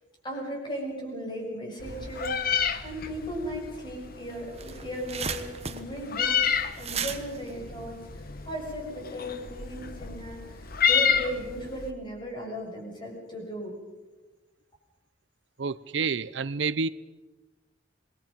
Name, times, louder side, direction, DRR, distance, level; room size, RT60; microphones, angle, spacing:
voice 1, 0.2-13.8, equal, 25° left, 0 dB, 6.6 m, -37 dB
Meow, 1.8-11.9, left 7 dB, 55° left, 1.1 m, -30 dB
sound 1, 4.0-4.1 4.4-8.6, right 6 dB, 35° right, 1.2 m, -36 dB
voice 2, 15.6-16.9, right 5 dB, 75° right, 17 dB, 0.6 m, -29 dB
27.0 x 21.0 x 5.3 m, 1.2 s
head